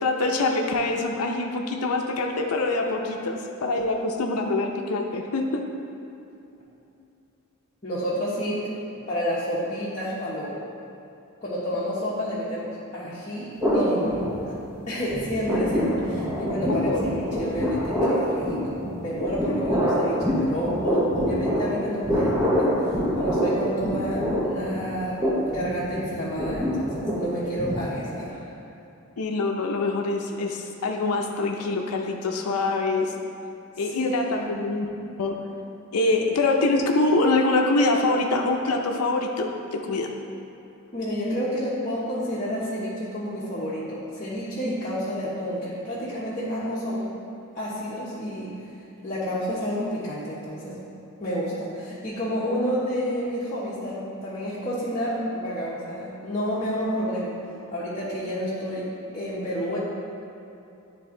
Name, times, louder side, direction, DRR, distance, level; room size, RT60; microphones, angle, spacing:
voice 1, 0.0-3.4 3.6-5.7 16.9-17.1 29.2-33.1 33.8-34.9 35.2-35.4 35.9-40.1, left 2 dB, 85° left, 2 dB, 0.6 m, -24 dB
voice 2, 7.8-8.7 9.1-10.6 11.4-14.6 14.9-16.9 17.1-25.2 25.5-28.5 33.9-34.2 40.9-47.0 47.5-48.6 49.0-50.8 51.2-57.4 57.7-59.8, equal, 35° left, -10 dB, 1.1 m, -30 dB
sound 1, 13.6-14.8 15.1-28.3, equal, 15° right, 0.9 m, -26 dB
10.0 x 3.5 x 3.7 m, 2.8 s
head